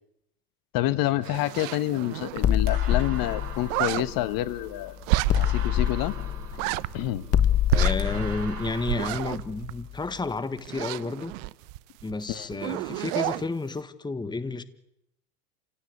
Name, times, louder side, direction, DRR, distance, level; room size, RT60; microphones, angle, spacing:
voice 1, 0.7-5.0 5.3-6.1 6.9-7.2 12.3-12.6, left 15 dB, 50° left, 1.3 m, -28 dB
sound 1, 1.2-2.8 3.0-3.1 3.3-4.0 5.0-5.7 6.0-6.1 6.4-7.4 7.7-10.2 10.6-12.1 12.4-13.5, right 19 dB, 60° right, 0.9 m, -30 dB
sound 2, 1.4-9.4, right 5 dB, 80° right, 3.5 m, -44 dB
sound 3, 2.4-4.8 5.3-9.9, left 10 dB, 30° left, 1.2 m, -26 dB
voice 2, 7.7-11.3 12.0-14.6, left 3 dB, 10° left, 1.4 m, -31 dB
28.0 x 17.0 x 8.5 m
hypercardioid pair, 90°, 45 cm